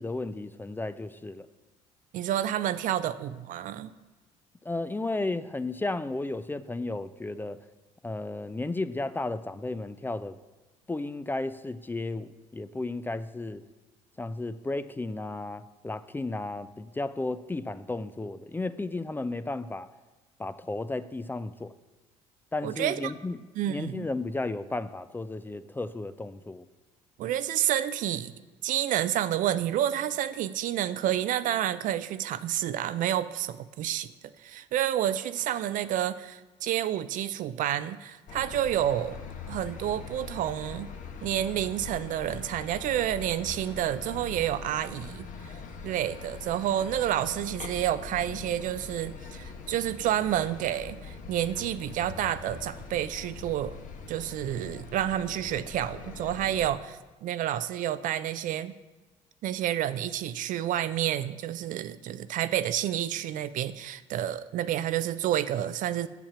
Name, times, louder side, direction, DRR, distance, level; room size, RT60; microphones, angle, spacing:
voice 1, 0.0-1.5 4.7-7.6 8.0-10.4 10.9-13.6 14.2-19.9 20.4-21.7 22.5-26.7, left 2 dB, 15° left, 0.4 m, -34 dB
voice 2, 2.1-3.9 22.6-23.1 23.6-24.1 27.2-28.3 28.6-34.1 34.4-39.2 39.5-40.9 41.2-45.3 45.8-53.8 54.1-58.7 59.4-66.1, right 11 dB, 60° right, 0.4 m, -29 dB
sound 1, 38.3-56.7, left 5 dB, 55° left, 1.1 m, -42 dB
7.2 x 5.8 x 6.8 m
supercardioid pair, 75°, 15 cm